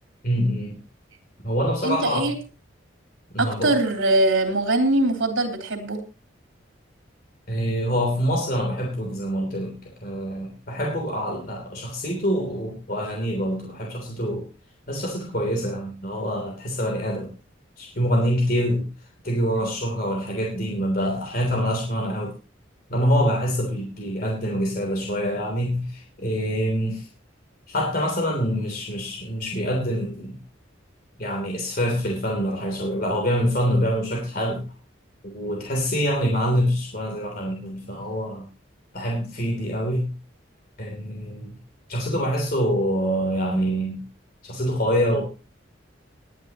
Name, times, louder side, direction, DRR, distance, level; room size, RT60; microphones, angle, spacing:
voice 1, 0.2-0.8 1.4-2.3 3.3-3.7 7.5-14.5 14.9-17.3 17.8-18.9 19.2-22.3 22.9-27.1 27.7-30.4 31.2-34.6 35.2-38.5 38.9-40.1 40.8-41.6 41.9-44.0 44.4-45.2, equal, 45° left, 0 dB, 3.2 m, -25 dB
voice 2, 1.8-2.3 3.4-6.0, right 2 dB, 80° right, 4 dB, 3.4 m, -22 dB
19.5 x 10.5 x 2.9 m, 0.31 s
head